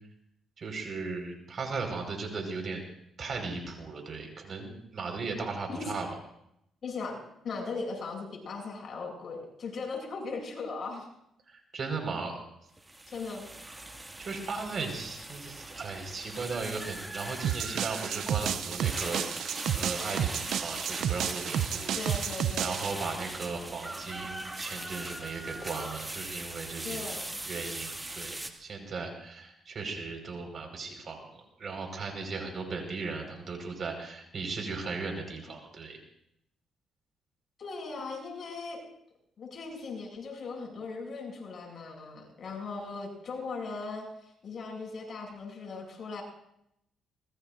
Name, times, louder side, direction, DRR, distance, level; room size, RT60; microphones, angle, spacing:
voice 1, 0.6-2.8 3.2-6.1 11.5-12.4 14.0-22.0 22.6-27.1 27.5-36.0, right 4 dB, 50° right, 3 dB, 5.3 m, -37 dB
voice 2, 6.8-11.1 13.1-13.5 21.9-22.8 26.8-27.4 37.6-38.8 39.4-46.2, left 4 dB, 50° left, 0 dB, 8.0 m, -38 dB
sound 1, 12.8-28.5, right 2 dB, 15° right, 2.2 m, -40 dB
sound 2, 17.4-22.9, right 9 dB, 75° right, 0.6 m, -31 dB
25.5 x 21.0 x 2.7 m, 0.76 s
cardioid pair, 90°, 0 cm